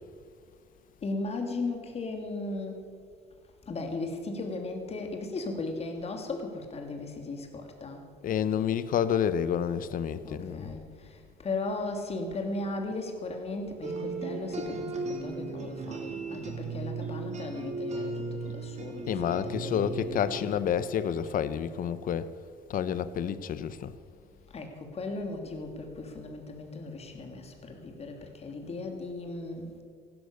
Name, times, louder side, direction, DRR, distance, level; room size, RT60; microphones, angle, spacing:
voice 1, 1.0-2.9 3.7-8.0 10.2-20.6 24.5-29.8, left 2 dB, 40° left, 2.8 m, -37 dB
voice 2, 8.2-10.7 19.1-22.3 22.7-23.9, left 8 dB, 55° left, 0.9 m, -29 dB
sound 1, 13.8-21.4, right 3 dB, 40° right, 2.4 m, -37 dB
16.0 x 12.0 x 6.7 m
cardioid pair, 110°, 17 cm